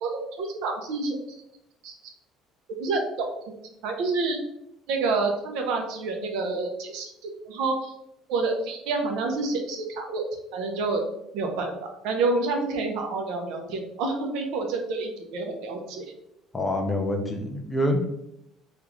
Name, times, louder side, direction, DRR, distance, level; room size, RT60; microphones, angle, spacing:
voice 1, 0.0-1.2 1.8-1.9 2.8-3.3 3.8-4.4 4.9-7.9 8.3-10.2 10.5-11.0 11.3-11.7 12.0-16.0, right 3 dB, 65° right, 3 dB, 0.7 m, -28 dB
voice 2, 16.5-18.0, left 1 dB, 10° left, 3 dB, 0.4 m, -26 dB
3.6 x 2.4 x 3.0 m, 0.80 s
cardioid pair, 180°, 0 cm